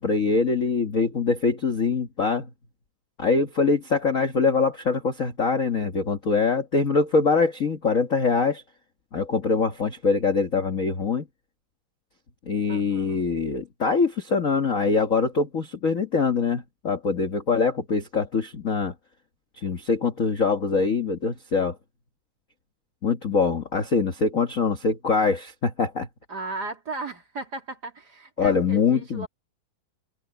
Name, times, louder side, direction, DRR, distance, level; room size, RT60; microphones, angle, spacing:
voice 1, 0.0-2.5 3.2-8.6 9.1-11.2 12.5-18.9 19.6-21.7 23.0-26.1 28.4-29.3, left 4 dB, 55° left, 0.8 m, -23 dB
voice 2, 12.7-13.3 26.3-29.3, right 2 dB, 30° right, 3.1 m, -36 dB
omnidirectional pair, 3.7 m